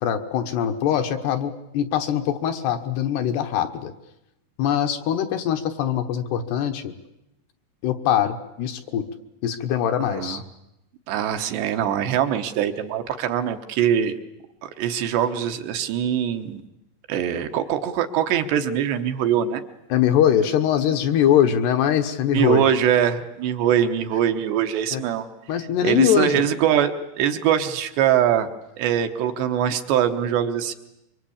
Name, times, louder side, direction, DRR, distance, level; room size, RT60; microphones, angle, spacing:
voice 1, 0.0-3.9 4.6-6.9 7.8-9.1 9.4-10.4 19.9-22.7 24.9-25.0 25.5-26.4, left 10 dB, 70° left, 7 dB, 3.0 m, -22 dB
voice 2, 10.0-10.4 11.1-14.1 14.6-16.6 17.1-19.6 22.3-25.3 25.8-28.5 28.8-30.7, right 9 dB, 70° right, 7 dB, 3.1 m, -22 dB
25.5 x 24.0 x 8.7 m, 0.89 s
omnidirectional pair, 5.4 m